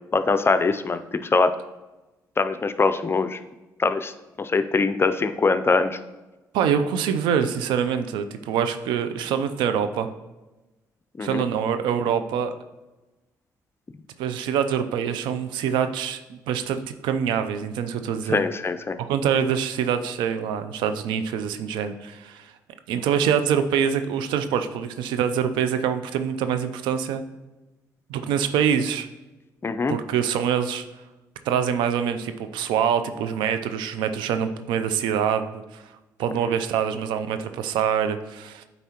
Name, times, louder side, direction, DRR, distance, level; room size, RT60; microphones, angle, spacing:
voice 1, 0.1-1.5 2.4-3.4 3.8-4.1 4.4-6.0 11.2-11.4 18.3-19.0 29.6-30.0, left 4 dB, 30° left, 10 dB, 0.5 m, -22 dB
voice 2, 6.5-10.1 11.2-12.5 14.2-18.4 19.0-22.5 22.9-27.2 28.1-29.1 29.9-30.8 31.4-35.9 36.2-38.6, right 8 dB, 85° right, 10 dB, 0.4 m, -25 dB
8.9 x 4.1 x 2.9 m, 1.1 s
supercardioid pair, 60°, 8 cm